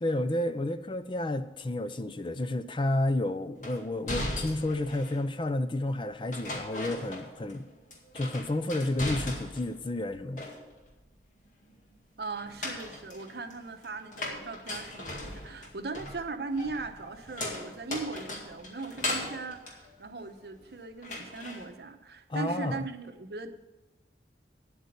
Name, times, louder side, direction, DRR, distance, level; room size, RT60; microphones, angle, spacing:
voice 1, 0.0-7.7 8.1-10.5 22.3-22.9, left 1 dB, 30° left, 12 dB, 0.4 m, -31 dB
sound 1, 3.6-5.3 6.3-7.6 7.9-9.8 10.1-10.9 12.3-20.6 21.0-21.6, left 1 dB, 45° left, 1.9 m, -38 dB
voice 2, 12.2-23.5, right 3 dB, 65° right, 7 dB, 0.8 m, -39 dB
9.5 x 8.2 x 6.6 m, 1.1 s
head